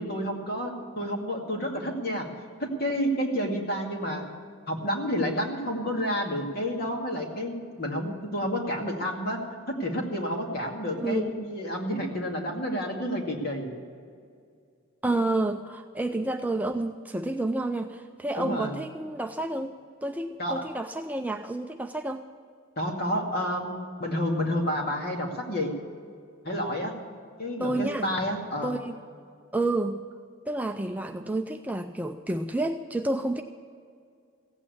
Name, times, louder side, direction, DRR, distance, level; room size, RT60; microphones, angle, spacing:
voice 1, 0.0-2.3 2.6-4.3 4.7-9.4 9.7-13.7 18.3-18.8 20.4-20.6 22.8-25.7 26.4-26.9 27.4-28.7, equal, 45° left, 1 dB, 2.3 m, -30 dB
voice 2, 11.0-11.3 15.0-19.7 20.0-22.2 27.6-28.1 28.6-29.0 29.5-30.0 30.5-33.4, right 2 dB, 10° right, 5 dB, 0.4 m, -29 dB
16.0 x 8.8 x 8.5 m, 2.2 s
head